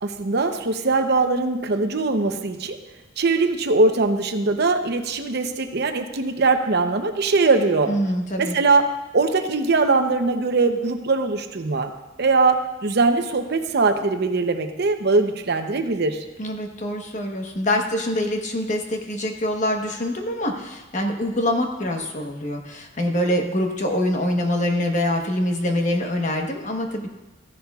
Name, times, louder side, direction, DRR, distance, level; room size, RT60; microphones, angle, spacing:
voice 1, 0.0-2.8 3.2-7.9 8.4-8.8 9.1-11.9 12.2-16.2, right 3 dB, 55° right, 7 dB, 0.7 m, -21 dB
voice 2, 7.9-8.6 16.4-27.1, left 1 dB, 40° left, 3 dB, 1.1 m, -25 dB
14.5 x 10.5 x 2.4 m, 1.1 s
head